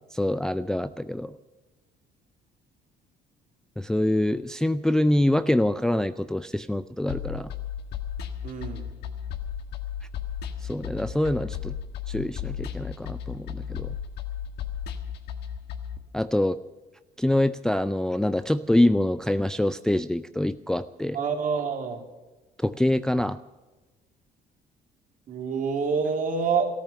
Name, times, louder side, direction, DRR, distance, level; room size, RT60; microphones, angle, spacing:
voice 1, 0.1-1.3 3.8-7.5 10.6-11.8 12.1-14.0 16.1-16.6 17.2-21.2 22.6-23.4, left 1 dB, 5° left, 12 dB, 0.4 m, -25 dB
sound 1, 7.1-16.0, left 9 dB, 75° left, 1.5 m, -34 dB
voice 2, 8.4-8.9 21.1-22.0 25.3-26.7, right 5 dB, 55° right, 2 dB, 3.1 m, -27 dB
14.0 x 13.5 x 6.9 m, 1.2 s
cardioid pair, 110°, 17 cm